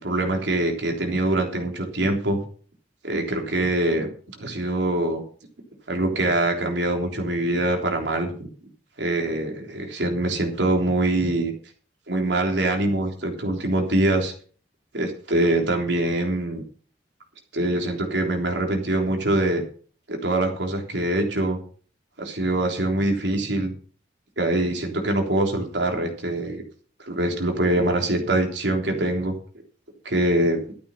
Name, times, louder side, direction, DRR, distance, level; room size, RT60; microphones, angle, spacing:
voice 1, 0.0-2.4 3.0-4.1 4.4-5.2 5.9-8.4 9.0-11.5 12.1-14.3 14.9-16.6 17.5-19.6 20.1-21.6 22.2-23.7 24.4-26.6 27.0-29.3 30.1-30.6, right 1 dB, 70° right, 3 dB, 3.5 m, -24 dB
13.5 x 8.6 x 5.8 m, 0.43 s
head